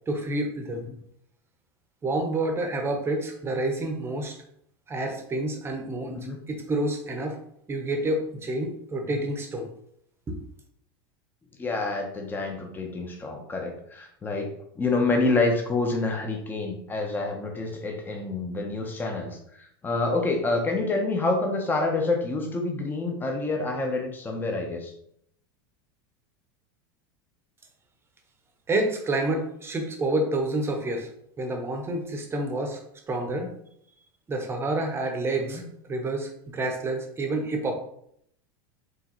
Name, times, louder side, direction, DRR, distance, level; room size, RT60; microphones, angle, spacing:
voice 1, 0.1-0.9 2.0-4.4 4.9-6.2 6.5-7.4 7.7-9.7 10.3-10.4 28.7-31.1 31.4-32.8 33.1-33.5 34.3-37.7, right 2 dB, 20° right, 4 dB, 0.9 m, -28 dB
voice 2, 11.6-24.9 33.3-33.5 35.4-35.6, left 3 dB, 15° left, 2 dB, 0.8 m, -27 dB
4.8 x 3.1 x 3.0 m, 0.71 s
supercardioid pair, 115°, 12 cm